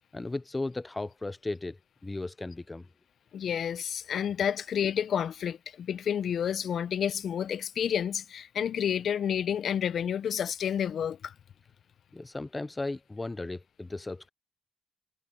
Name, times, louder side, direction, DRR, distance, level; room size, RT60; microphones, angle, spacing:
voice 1, 0.1-2.9 12.1-14.3, left 2 dB, 20° left, 0.9 m, -36 dB
voice 2, 3.3-11.3, left 8 dB, 60° left, 1.4 m, -30 dB
hypercardioid pair, 50°, 0 cm